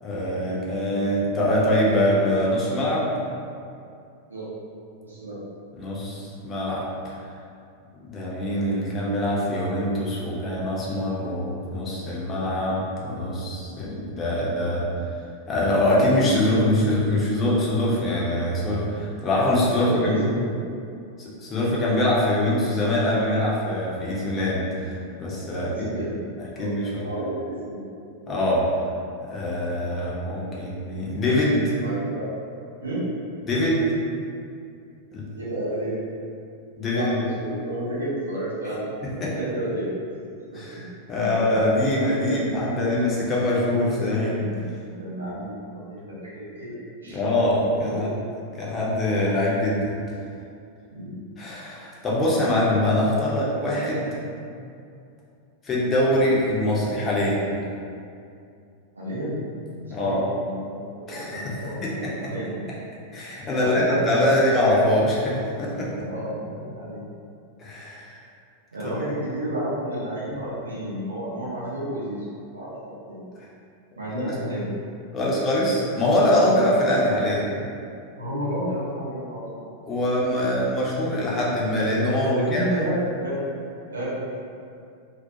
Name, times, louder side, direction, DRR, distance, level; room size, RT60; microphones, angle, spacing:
voice 1, 0.0-3.1 5.7-7.1 8.0-14.8 15.5-20.2 21.2-24.8 25.2-25.7 26.4-27.1 28.3-28.7 29.2-31.7 33.5-33.9 35.1-35.2 36.8-37.2 39.0-39.3 40.5-40.8 41.1-44.4 47.1-48.1 48.6-49.9 51.4-54.2 55.6-57.5 59.9-60.2 61.1-62.1 63.1-65.9 67.6-68.2 68.8-69.0 73.9-74.3 75.1-77.4 79.9-82.9, left 1 dB, 25° left, -6 dB, 0.6 m, -23 dB
voice 2, 5.0-5.4 19.8-20.6 25.5-27.9 28.2-28.4 31.8-32.4 32.8-33.1 35.4-36.1 36.9-38.8 39.3-39.9 40.5-40.6 41.1-41.5 42.2-42.4 44.2-47.2 47.7-48.1 50.9-51.3 59.0-59.5 59.8-62.6 63.5-64.3 66.0-67.1 68.7-72.2 72.5-73.3 74.0-74.8 76.7-76.8 78.2-79.9 82.2-83.5 83.9-84.2, right 1 dB, 75° right, -9 dB, 0.6 m, -31 dB
2.4 x 2.1 x 2.6 m, 2.4 s
figure-of-eight pair, 90°, 0 cm